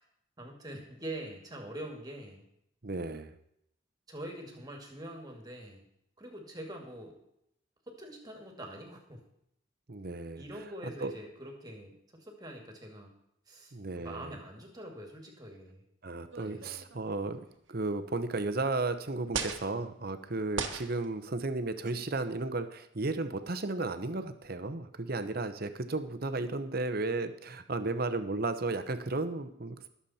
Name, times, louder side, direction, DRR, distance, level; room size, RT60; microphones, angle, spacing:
voice 1, 0.4-2.4 4.1-5.8 6.2-7.2 7.9-9.2 10.4-13.1 13.5-15.8 16.4-16.8, right 1 dB, 20° right, 3 dB, 2.2 m, -44 dB
voice 2, 2.8-3.3 9.9-10.4 11.0-11.1 13.7-14.4 16.0-29.9, right 2 dB, 45° right, 10 dB, 0.9 m, -34 dB
sound 1, 16.3-17.3 18.2-18.3 19.3-19.7 20.5-21.1 21.9-22.1, right 5 dB, 65° right, 1.4 m, -37 dB
21.0 x 7.1 x 4.3 m, 0.76 s
head